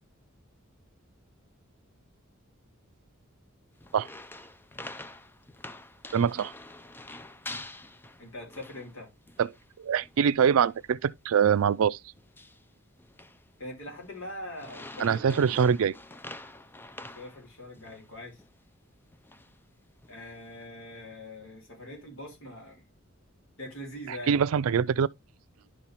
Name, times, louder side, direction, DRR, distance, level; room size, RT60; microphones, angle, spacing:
sound 1, 3.8-9.0 9.3-9.7 10.0-10.2 10.6-10.9 11.3-11.5 12.2-12.7 13.0-13.4 13.9-14.1 14.6-18.1 18.4-18.5 19.1-19.6 20.0-20.5, left 2 dB, 10° left, 0.4 m, -46 dB
voice 1, 6.1-6.5 9.4-9.5 9.8-12.0 15.0-15.9 24.3-25.1, right 7 dB, 80° right, 0.4 m, -24 dB
voice 2, 8.2-9.1 13.6-15.5 17.0-18.4 20.1-22.9 23.6-24.8, left 1 dB, 70° left, 4.0 m, -43 dB
10.5 x 5.6 x 2.9 m
head